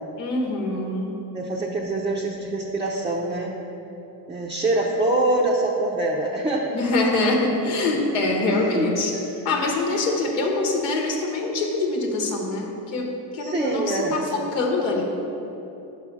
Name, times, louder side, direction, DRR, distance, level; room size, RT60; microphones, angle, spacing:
voice 1, 0.2-1.2 6.7-9.1 9.4-15.0, left 2 dB, 85° left, 0 dB, 1.1 m, -24 dB
voice 2, 1.3-3.5 4.3-6.8 8.5-8.9 9.1-9.3 13.4-14.2, right 2 dB, 15° right, -2 dB, 0.5 m, -24 dB
5.5 x 5.4 x 4.7 m, 2.9 s
supercardioid pair, 90°, 47 cm